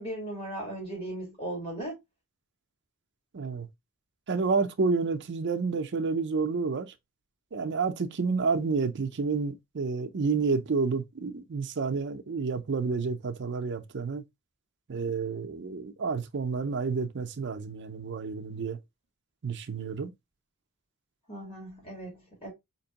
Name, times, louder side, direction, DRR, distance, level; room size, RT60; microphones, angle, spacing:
voice 1, 0.0-2.0 21.3-22.5, right 1 dB, 25° left, 2.1 m, -37 dB
voice 2, 3.3-3.7 4.3-6.9 7.5-14.2 14.9-18.8 19.4-20.1, right 4 dB, 55° right, 0.5 m, -29 dB
4.4 x 2.9 x 2.8 m
head